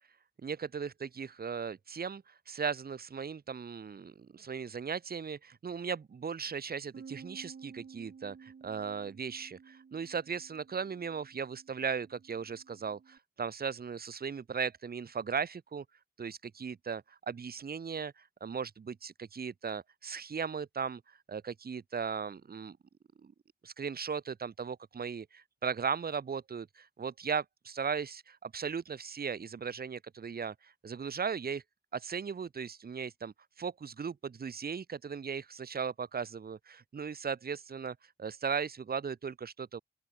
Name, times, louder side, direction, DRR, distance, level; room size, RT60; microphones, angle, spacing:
voice 1, 0.4-15.8 16.2-21.0 21.3-22.8 23.2-23.3 23.6-31.6 31.9-39.8, right 6 dB, 55° right, 0.9 m, -37 dB
Bass guitar, 6.9-13.2, right 6 dB, 85° right, 7.5 m, -53 dB
open air
wide cardioid pair, 95°, 18 cm